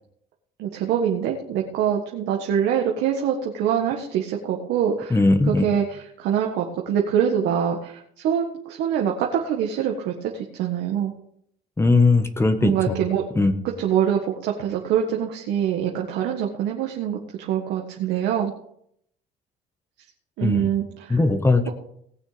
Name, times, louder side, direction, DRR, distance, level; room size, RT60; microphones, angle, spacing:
voice 1, 0.6-5.2 5.5-11.1 12.6-13.3 13.6-18.5 20.4-21.2, right 9 dB, 85° right, 1 dB, 1.6 m, -24 dB
voice 2, 5.1-5.6 11.8-12.9 13.3-13.5 20.4-20.7 21.1-21.7, left 3 dB, 15° left, 8 dB, 1.4 m, -19 dB
18.5 x 6.5 x 5.1 m, 0.71 s
cardioid pair, 110°, 17 cm